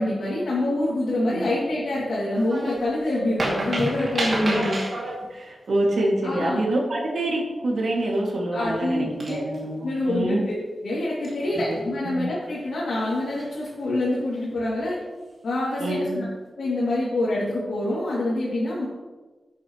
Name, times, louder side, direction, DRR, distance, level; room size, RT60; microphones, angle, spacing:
voice 1, 0.0-4.7 6.2-6.6 8.5-9.4 9.8-10.4 10.8-15.0 15.4-16.2 16.5-18.9, left 1 dB, 75° left, -7 dB, 2.6 m, -26 dB
sound 1, 2.3-2.8 3.1-5.2 7.8-8.1 8.6-8.7 9.2-9.8 11.2-11.9 13.1-13.7 14.2-14.4, right 1 dB, 45° right, 2.6 m, -30 dB
voice 2, 4.3-4.8 5.3-10.5 11.6-11.8 12.0-12.3 15.8-16.2, right 1 dB, 65° right, -2 dB, 2.3 m, -26 dB
10.5 x 8.4 x 3.1 m, 1.3 s
wide cardioid pair, 135°, 0 cm